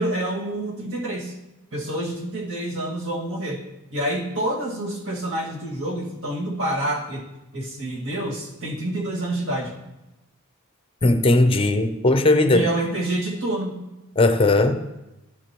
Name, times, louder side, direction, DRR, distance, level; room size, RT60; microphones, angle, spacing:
voice 1, 0.0-1.3 1.7-3.6 3.9-7.2 7.5-9.7 12.5-13.8, right 1 dB, 60° right, -2 dB, 2.1 m, -27 dB
voice 2, 11.0-12.7 14.2-14.8, left 2 dB, 25° left, 8 dB, 0.6 m, -18 dB
15.0 x 6.9 x 3.0 m, 0.97 s
head